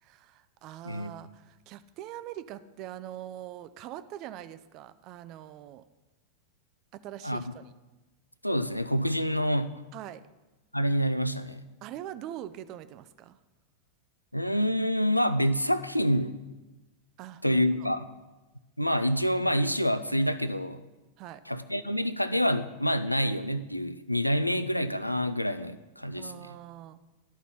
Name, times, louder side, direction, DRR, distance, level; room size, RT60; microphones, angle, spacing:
voice 1, 0.0-5.8 6.9-7.7 9.9-10.2 11.8-13.4 17.2-17.9 21.2-21.4 26.2-27.0, right 12 dB, 40° right, 13 dB, 0.4 m, -43 dB
voice 2, 8.4-9.7 10.7-11.6 14.3-16.3 17.4-18.1 18.8-20.8 21.5-26.5, equal, 90° left, 13 dB, 0.3 m, -27 dB
12.0 x 4.0 x 4.1 m, 1.1 s
figure-of-eight pair, 90°, 0 cm